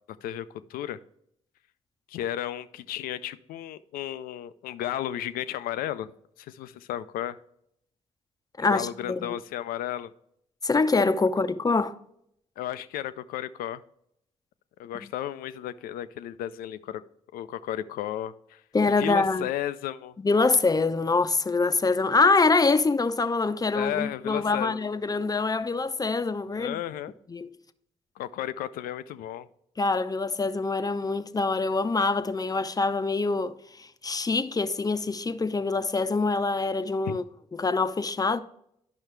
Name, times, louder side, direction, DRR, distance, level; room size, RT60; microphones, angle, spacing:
voice 1, 0.2-1.0 2.1-6.1 6.4-7.4 8.7-10.1 12.6-13.8 14.8-17.0 17.3-18.6 19.0-20.1 23.7-24.8 26.5-27.1 28.2-29.5 37.1-37.2, left 12 dB, 75° left, 0.4 m, -33 dB
voice 2, 8.6-9.4 10.6-12.0 14.9-15.1 18.7-19.5 20.2-26.8 27.3-27.6 29.8-37.2 37.5-38.4, left 3 dB, 25° left, 0.6 m, -25 dB
10.5 x 5.5 x 3.2 m
hypercardioid pair, 50°, 15 cm